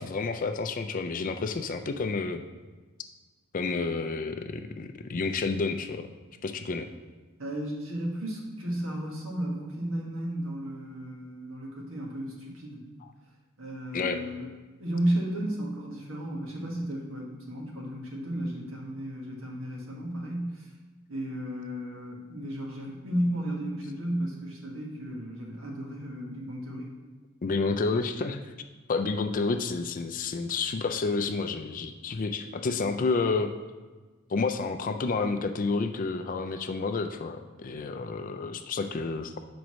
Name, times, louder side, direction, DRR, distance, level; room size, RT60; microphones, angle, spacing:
voice 1, 0.0-2.4 3.5-6.1 6.4-6.9 13.0-13.1 13.9-14.2 27.4-28.5 28.9-33.5 34.3-39.4, left 4 dB, 40° left, 7 dB, 0.4 m, -30 dB
voice 2, 7.4-12.8 13.6-14.5 14.8-20.7 21.1-26.9, right 1 dB, 65° right, -1 dB, 1.5 m, -33 dB
5.2 x 4.7 x 6.2 m, 1.3 s
head